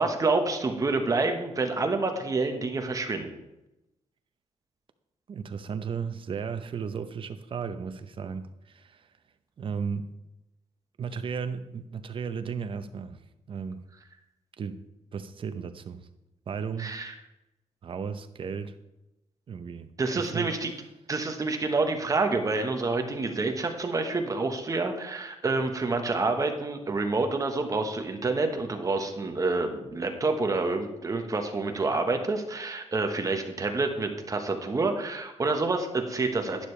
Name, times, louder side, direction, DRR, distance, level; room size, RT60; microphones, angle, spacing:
voice 1, 0.0-3.3 16.8-17.1 20.0-20.7 21.1-36.7, right 3 dB, 30° right, 5 dB, 1.2 m, -28 dB
voice 2, 5.3-9.1 9.6-10.1 11.0-13.2 13.5-13.8 14.6-14.8 15.1-16.0 16.5-17.0 17.8-18.7 19.5-19.9 20.1-20.5, right 6 dB, 45° right, 10 dB, 0.8 m, -35 dB
11.5 x 10.0 x 3.3 m, 0.94 s
cardioid pair, 135°, 12 cm